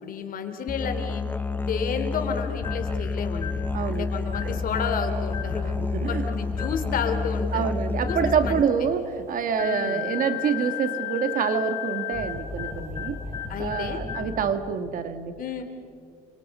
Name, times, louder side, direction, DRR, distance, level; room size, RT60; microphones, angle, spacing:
voice 1, 0.0-1.2 1.6-5.7 6.1-8.2 8.4-8.9 9.6-10.0 13.5-14.0 15.4-15.6, left 6 dB, 55° left, 6 dB, 3.5 m, -31 dB
Musical instrument, 0.7-8.6, left 3 dB, 10° left, 0.8 m, -29 dB
sound 1, 2.6-2.9 3.3-3.7 4.3-4.6 5.3-5.6 6.5-6.9 8.0-8.4 9.6-14.4, left 9 dB, 25° left, 7.1 m, -34 dB
Boiling, 3.5-14.5, equal, 15° right, 5.4 m, -49 dB
voice 2, 3.7-4.1 4.4-4.6 5.6-6.3 7.5-13.2 13.6-15.6, right 6 dB, 55° right, 9 dB, 1.9 m, -27 dB
29.5 x 27.0 x 5.6 m, 2.4 s
cardioid pair, 110°, 17 cm